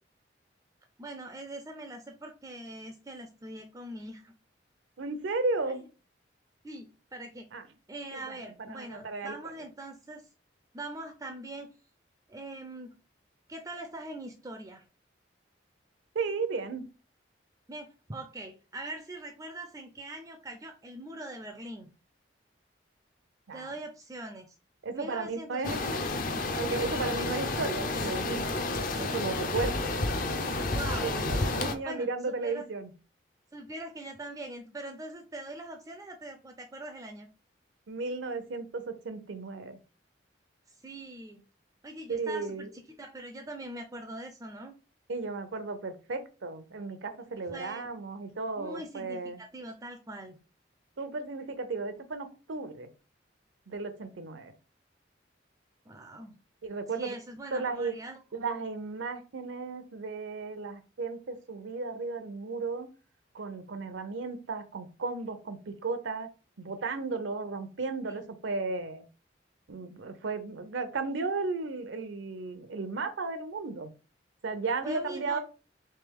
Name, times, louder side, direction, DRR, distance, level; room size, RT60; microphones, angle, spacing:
voice 1, 1.0-4.3 6.6-7.5 7.9-10.2 10.7-11.7 12.3-12.9 13.5-14.8 17.7-21.9 23.5-24.6 24.9-25.9 26.8-27.1 30.7-31.2 31.8-32.7 33.5-37.3 40.8-41.4 41.8-42.7 43.0-44.7 47.5-47.9 48.6-50.4 55.9-56.3 56.9-58.2 68.1-68.2 74.8-75.4, right 1 dB, 15° right, 5 dB, 0.3 m, -42 dB
voice 2, 5.0-5.8 7.5-7.6 8.1-9.4 16.1-16.8 23.5-23.7 24.8-25.8 26.5-28.4 29.0-29.9 31.0-32.9 37.9-39.8 42.1-42.7 45.1-49.4 51.0-52.9 53.7-54.5 56.6-57.1 57.5-57.9 58.3-62.9 63.3-66.3 66.6-69.1 69.7-73.9 74.4-75.4, right 3 dB, 80° right, 10 dB, 0.6 m, -34 dB
sound 1, 25.6-31.7, left 2 dB, 45° left, 0.5 m, -30 dB
3.3 x 3.1 x 3.5 m, 0.34 s
head